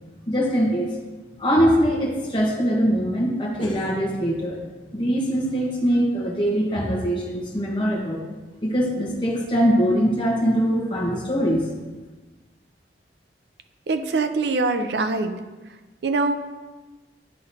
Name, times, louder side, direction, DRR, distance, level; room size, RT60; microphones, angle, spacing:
voice 1, 0.3-0.9 1.4-4.6 4.9-8.2 8.6-11.6, equal, 30° left, -5 dB, 1.1 m, -22 dB
voice 2, 13.9-15.3 16.0-16.4, right 3 dB, 75° right, 8 dB, 0.5 m, -23 dB
9.8 x 3.9 x 2.7 m, 1.2 s
head